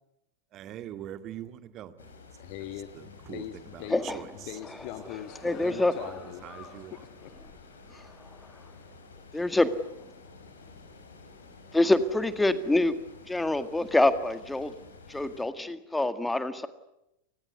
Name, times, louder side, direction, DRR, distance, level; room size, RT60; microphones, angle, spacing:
voice 1, 0.5-2.1 3.3-3.4 3.7-3.8 4.1-4.3 5.6-5.7 6.0-6.1 6.4-6.9, right 11 dB, 35° right, 10 dB, 2.0 m, -42 dB
sound 1, 2.0-15.5, left 4 dB, 70° left, 4.9 m, -51 dB
voice 2, 2.4-4.0 4.3-6.4 6.7-7.3, left 12 dB, 45° left, 10 dB, 1.5 m, -41 dB
voice 3, 3.9-4.2 5.4-5.9 7.9-8.3 9.3-9.9 11.7-13.0 13.3-14.7 15.1-16.7, left 2 dB, 5° left, 11 dB, 1.8 m, -26 dB
sound 2, 4.5-7.2 7.7-7.8, left 3 dB, 25° left, 5.4 m, -49 dB
30.0 x 20.0 x 9.6 m, 0.88 s
figure-of-eight pair, 90°, 0 cm